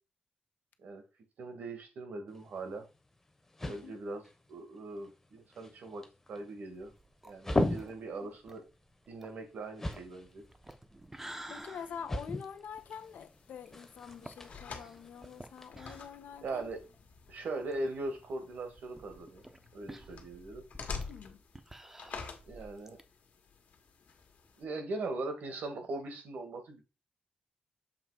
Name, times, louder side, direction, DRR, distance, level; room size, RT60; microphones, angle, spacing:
voice 1, 1.4-2.9 3.7-4.2 4.5-6.9 7.2-8.6 9.1-10.4 16.4-16.8 17.3-19.4 19.7-20.6 22.5-23.0 24.6-26.8, right 2 dB, 80° right, 1.6 m, -40 dB
sound 1, 2.3-15.7, left 1 dB, 15° left, 0.9 m, -40 dB
voice 2, 3.6-4.0 8.2-8.3 11.5-16.7 21.1-21.4, left 7 dB, 85° left, 0.8 m, -46 dB
sound 2, 6.7-17.0 17.3-17.4 17.7-17.8 18.5-23.0, right 1 dB, 10° right, 0.6 m, -52 dB
sound 3, 12.7-24.6, left 5 dB, 70° left, 1.4 m, -49 dB
7.1 x 3.1 x 4.8 m
wide cardioid pair, 160°, 3 cm